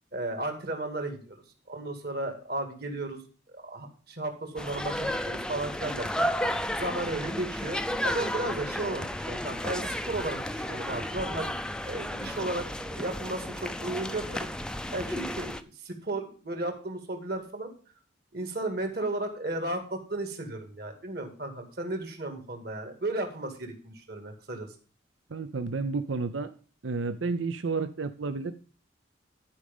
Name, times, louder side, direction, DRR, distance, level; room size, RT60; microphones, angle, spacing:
voice 1, 0.1-3.2 3.5-6.3 6.8-11.5 11.8-12.7 12.9-14.5 14.9-17.7 18.3-24.7, right 2 dB, 50° right, 5 dB, 2.3 m, -34 dB
sound 1, 4.6-15.6, left 1 dB, 5° left, 0.4 m, -33 dB
voice 2, 25.3-26.5 26.8-28.6, right 4 dB, 80° right, 10 dB, 0.7 m, -31 dB
11.5 x 5.2 x 5.4 m, 0.39 s
head